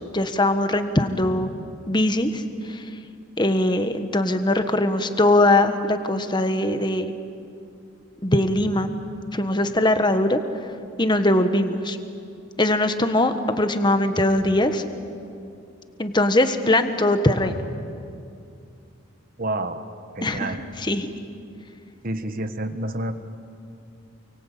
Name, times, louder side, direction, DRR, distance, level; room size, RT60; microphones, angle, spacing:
voice 1, 0.1-1.5 1.9-3.0 3.4-7.1 8.2-8.9 9.3-10.7 11.0-12.0 12.6-14.8 16.0-17.6 20.2-21.1, left 1 dB, 20° left, 8 dB, 1.3 m, -21 dB
voice 2, 19.4-19.9 20.1-20.7 22.0-23.1, right 1 dB, 45° right, 9 dB, 1.5 m, -29 dB
29.0 x 24.0 x 8.5 m, 2.5 s
head